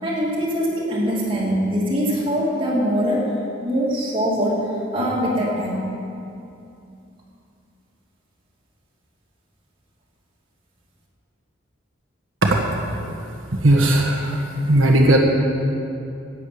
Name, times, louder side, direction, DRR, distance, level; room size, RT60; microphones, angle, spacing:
voice 1, 0.0-3.3 3.6-4.7 4.9-5.9, equal, 25° right, -5 dB, 2.7 m, -22 dB
voice 2, 12.4-13.1 13.6-15.2, right 1 dB, 85° right, 1 dB, 1.3 m, -18 dB
10.5 x 8.5 x 8.6 m, 2.6 s
head